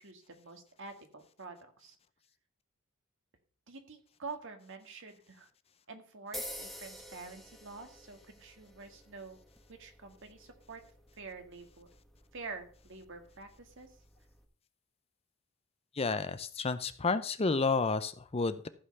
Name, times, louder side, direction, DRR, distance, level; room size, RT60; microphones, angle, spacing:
voice 1, 0.0-2.0 3.7-5.5 5.9-9.4 9.7-10.8 11.2-11.9 12.3-14.0, right 4 dB, 60° right, 5 dB, 1.8 m, -47 dB
sound 1, 6.3-14.4, equal, ahead, 1.2 m, -50 dB
voice 2, 16.0-18.7, left 4 dB, 25° left, 12 dB, 0.6 m, -31 dB
14.5 x 5.5 x 5.6 m, 0.43 s
head